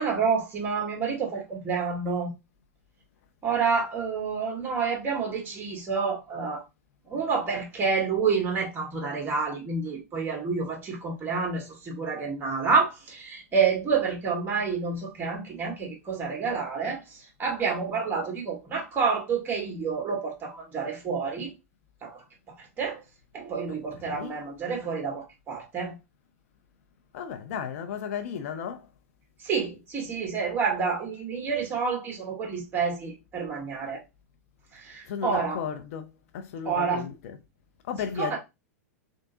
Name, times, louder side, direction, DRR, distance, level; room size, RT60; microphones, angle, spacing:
voice 1, 0.0-2.3 3.4-6.6 7.1-21.5 22.0-22.2 22.6-23.0 23.3-26.0 29.4-34.0 34.7-35.6 36.7-37.1 38.2-38.4, right 5 dB, 25° right, 1.8 m, -28 dB
voice 2, 27.1-28.9 35.1-37.4 37.9-38.4, left 7 dB, 60° left, 0.7 m, -34 dB
3.8 x 3.6 x 2.7 m
hypercardioid pair, 110°, 9 cm